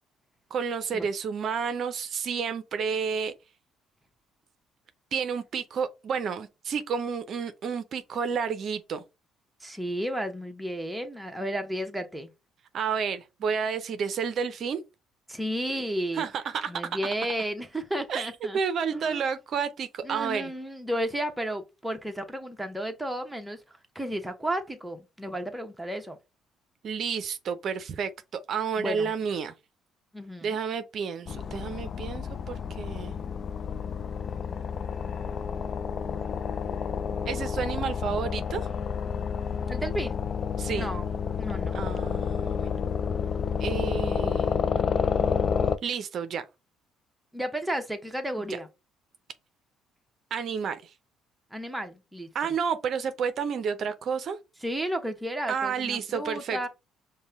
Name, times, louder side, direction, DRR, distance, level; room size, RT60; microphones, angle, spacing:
voice 1, 0.5-3.3 5.1-9.0 12.7-14.8 16.1-17.0 18.1-20.5 26.8-29.5 30.4-33.1 37.3-38.7 40.6-40.9 41.7-42.7 43.6-44.5 45.8-46.4 50.3-50.9 52.3-54.4 55.5-56.6, right 6 dB, 55° right, 0.5 m, -30 dB
voice 2, 9.6-12.3 15.3-16.3 16.7-18.6 18.9-19.2 20.0-23.6 23.9-26.2 28.8-29.1 30.1-30.6 39.7-40.2 40.7-41.1 41.4-41.8 47.3-48.7 51.5-52.3 54.6-56.7, right 1 dB, 5° right, 1.0 m, -33 dB
sound 1, 31.3-45.8, left 6 dB, 50° left, 0.4 m, -30 dB
5.3 x 2.2 x 3.6 m
supercardioid pair, 65°, 0 cm